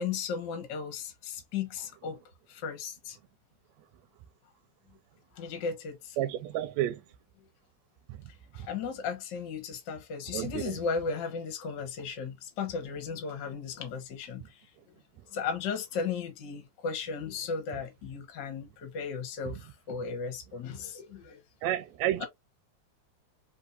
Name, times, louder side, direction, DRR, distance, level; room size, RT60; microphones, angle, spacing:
voice 1, 0.0-2.2 2.5-3.2 5.3-6.2 8.5-14.6 15.3-21.4 22.2-22.3, left 5 dB, 50° left, 1.5 m, -35 dB
voice 2, 6.2-7.0 8.1-8.2 8.6-8.7 10.3-10.8 21.6-22.3, right 12 dB, 80° right, 1.7 m, -31 dB
4.4 x 3.6 x 2.6 m
omnidirectional pair, 3.4 m